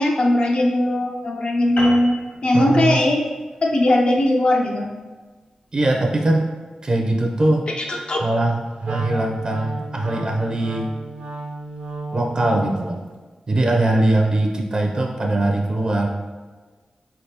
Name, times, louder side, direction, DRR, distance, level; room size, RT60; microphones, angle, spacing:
voice 1, 0.0-3.2 3.6-4.9 7.8-8.2, left 1 dB, 55° left, 0 dB, 0.4 m, -19 dB
sound 1, 1.8-6.5, left 1 dB, 70° left, 1.4 m, -36 dB
voice 2, 2.5-3.0 5.7-6.5 6.8-7.7 8.2-10.9 12.1-13.0 13.5-16.1, right 2 dB, 40° right, 1 dB, 0.5 m, -21 dB
Wind instrument woodwind instrument, 8.8-12.9, right 2 dB, 85° right, 0.7 m, -32 dB
4.2 x 3.4 x 2.8 m, 1.3 s
wide cardioid pair, 95°, 2 cm